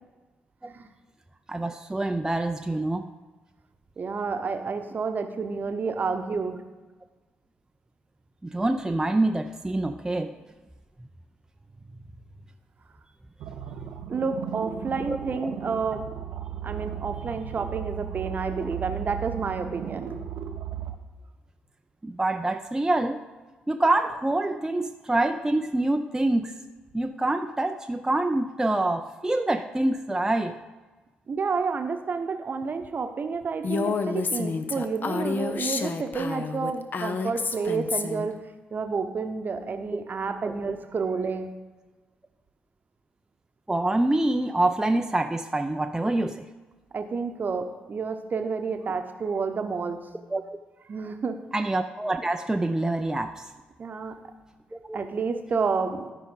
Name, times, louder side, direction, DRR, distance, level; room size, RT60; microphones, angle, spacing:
voice 1, 1.5-3.1 8.4-10.3 15.1-15.2 22.0-23.2 23.7-26.5 26.9-30.6 39.9-40.0 43.7-46.4 50.3-50.4 51.5-53.4 54.7-55.0, right 2 dB, 10° right, 6 dB, 0.5 m, -26 dB
voice 2, 4.0-6.6 14.1-16.1 16.6-20.1 31.3-38.4 38.7-41.5 46.9-50.0 50.9-51.4 53.8-54.2 54.9-56.1, right 5 dB, 45° right, 7 dB, 0.9 m, -30 dB
sound 1, 13.4-21.0, right 10 dB, 65° right, 0.6 m, -36 dB
Female speech woman speaking, 33.6-38.3, left 4 dB, 45° left, 0.7 m, -29 dB
13.5 x 5.0 x 3.9 m, 1.2 s
figure-of-eight pair, 40°, 4 cm